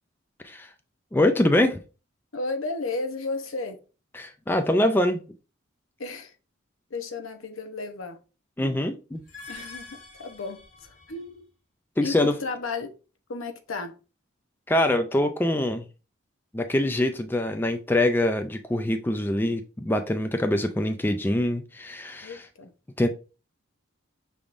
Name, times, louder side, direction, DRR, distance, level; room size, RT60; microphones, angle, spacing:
voice 1, 1.1-1.8 4.1-5.2 8.6-9.2 12.0-12.3 14.7-15.8 16.5-22.5 23.0-23.1, left 1 dB, 10° left, 0.3 m, -24 dB
voice 2, 2.3-3.8 6.0-6.3 6.9-8.2 9.5-11.5 12.0-12.9 13.3-14.0 22.2-22.7, left 3 dB, 80° left, 0.8 m, -33 dB
sound 1, 9.1-11.4, left 3 dB, 40° left, 1.4 m, -45 dB
6.0 x 3.5 x 2.5 m
head